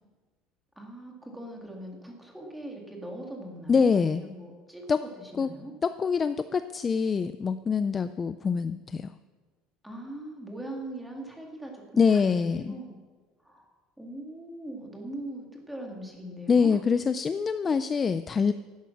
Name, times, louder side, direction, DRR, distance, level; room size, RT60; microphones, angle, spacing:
voice 1, 0.8-5.7 9.8-13.0 13.4-13.7 14.0-16.8, right 1 dB, 5° right, 0 dB, 2.3 m, -41 dB
voice 2, 3.7-4.2 4.9-5.0 5.4-5.5 5.8-9.1 12.0-12.8 16.5-18.5, left 5 dB, 20° left, 12 dB, 0.3 m, -25 dB
15.5 x 12.0 x 5.9 m, 1.4 s
cardioid pair, 165°, 0 cm